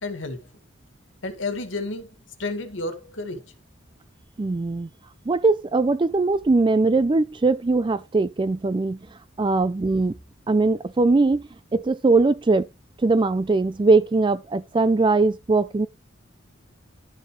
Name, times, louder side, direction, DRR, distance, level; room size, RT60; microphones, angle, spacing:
voice 1, 0.0-0.5 1.2-3.5, left 2 dB, 75° left, 2.0 m, -31 dB
voice 2, 4.4-4.9 5.3-9.0 9.4-10.2 10.5-12.7 13.0-15.9, right 3 dB, 25° right, 0.4 m, -21 dB
12.0 x 6.6 x 3.2 m
head